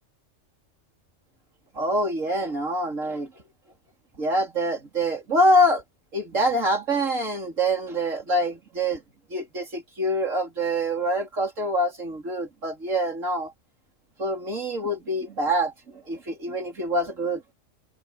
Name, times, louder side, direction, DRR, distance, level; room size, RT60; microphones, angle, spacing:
voice 1, 1.8-3.3 4.2-5.8 6.1-9.0 9.3-13.5 14.2-15.7 16.1-17.4, equal, 85° right, 4.2 m, -25 dB
omnidirectional pair, 1.3 m